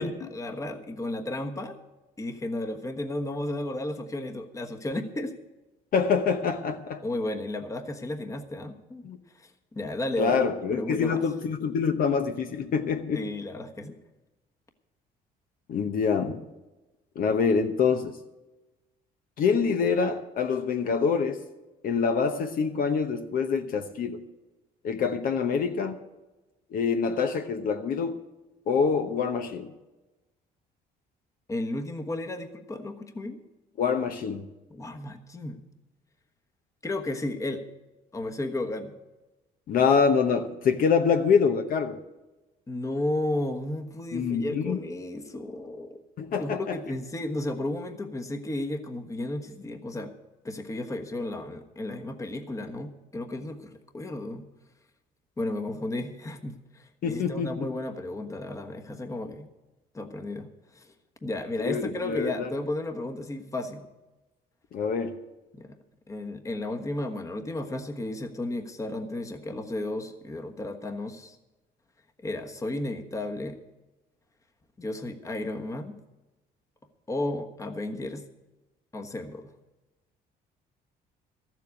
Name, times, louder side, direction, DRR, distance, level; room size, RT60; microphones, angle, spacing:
voice 1, 0.0-1.8 2.2-5.3 7.0-9.1 9.4-10.4 10.7-11.2 13.1-14.0 31.5-33.4 34.7-35.6 36.8-37.6 38.1-39.0 42.7-46.0 46.4-50.1 50.4-54.5 55.4-59.5 59.9-60.9 61.2-63.9 65.5-65.8 66.1-71.4 72.2-73.6 74.8-75.9 77.1-78.2 78.9-79.5, left 1 dB, 20° left, 5 dB, 1.3 m, -33 dB
voice 2, 5.9-7.0 9.0-9.2 10.2-13.2 15.7-16.4 17.2-18.2 19.4-21.4 21.8-24.2 24.8-26.0 26.7-28.2 28.7-29.7 33.8-34.4 39.7-42.0 44.1-44.9 46.2-46.8 57.0-57.7 61.6-62.5 64.7-65.2, left 6 dB, 55° left, 7 dB, 1.0 m, -25 dB
13.5 x 7.5 x 8.3 m, 1.1 s
cardioid pair, 110°, 17 cm